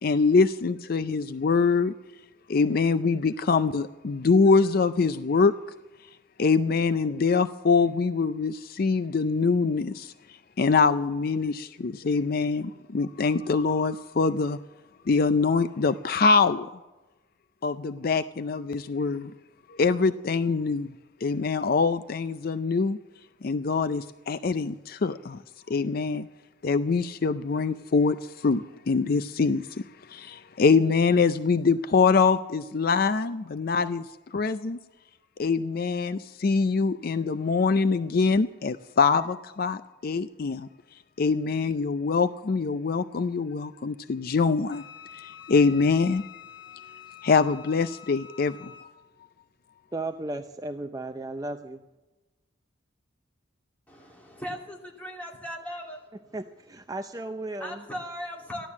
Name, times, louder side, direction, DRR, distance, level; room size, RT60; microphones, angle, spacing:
voice 1, 0.0-1.9 2.5-5.5 6.4-14.6 15.1-16.7 17.6-19.3 19.7-20.9 21.2-23.0 23.4-25.4 25.7-26.3 26.6-34.8 35.4-40.7 41.2-44.8 45.1-46.3 47.2-48.7, left 4 dB, 50° left, 11 dB, 0.4 m, -24 dB
Wind instrument woodwind instrument, 44.7-48.9, left 9 dB, 25° left, 1.3 m, -47 dB
voice 2, 49.9-51.8 56.3-57.8, right 2 dB, 20° right, 7 dB, 0.5 m, -35 dB
voice 3, 53.9-56.1 57.6-58.7, equal, 10° left, -1 dB, 2.8 m, -38 dB
15.0 x 11.5 x 7.2 m, 1.1 s
head